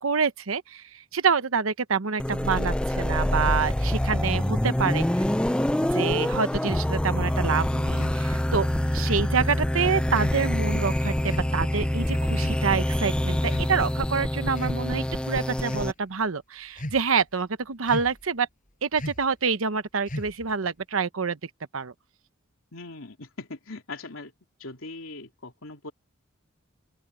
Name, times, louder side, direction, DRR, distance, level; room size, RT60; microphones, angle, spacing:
voice 1, 0.0-5.1 5.9-8.7 8.9-18.5 18.8-21.9, right 5 dB, 85° right, 0.9 m, -27 dB
sound 1, 2.2-15.9, left 1 dB, 5° left, 0.3 m, -26 dB
sound 2, 8.0-8.2 9.1-9.3 10.2-10.5 11.3-11.5 12.4-12.6 13.4-14.0 14.5-14.8 15.6-15.9 16.8-17.2 17.9-18.3 19.0-19.3 20.1-20.5, equal, 40° left, 6.9 m, -36 dB
voice 2, 22.7-24.3 24.6-25.9, left 3 dB, 85° left, 3.0 m, -40 dB
open air
head